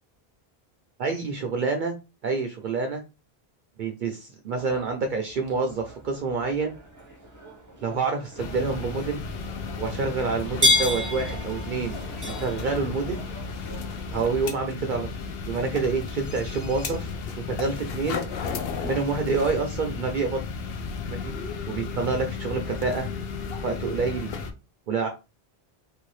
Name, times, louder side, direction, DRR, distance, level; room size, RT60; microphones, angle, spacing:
voice 1, 1.0-1.9 2.2-3.0 3.8-6.7 7.8-9.2 9.8-12.0 12.3-13.2 14.1-15.1 15.5-17.1 17.5-18.2 18.8-20.4 21.1-21.3 21.7-23.1 23.6-24.3 24.9-25.1, right 4 dB, 60° right, 4 dB, 0.6 m, -27 dB
sound 1, 4.5-14.3, left 1 dB, 20° right, 0.8 m, -32 dB
sound 2, 8.4-24.5, left 5 dB, 70° left, 0.8 m, -34 dB
3.2 x 2.8 x 3.1 m, 0.29 s
omnidirectional pair, 1.0 m